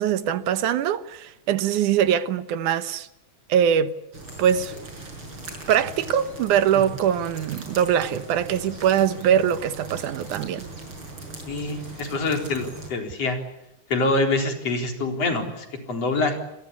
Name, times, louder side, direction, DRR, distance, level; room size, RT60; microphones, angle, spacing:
voice 1, 0.0-3.1 3.5-3.9 4.4-4.7 5.7-10.7, right 9 dB, 85° right, 2.6 m, -22 dB
sound 1, 4.1-12.9, right 2 dB, 40° right, 7.2 m, -39 dB
voice 2, 11.5-13.4 13.9-16.4, left 2 dB, 55° left, 5.1 m, -25 dB
28.0 x 22.0 x 8.5 m
omnidirectional pair, 3.4 m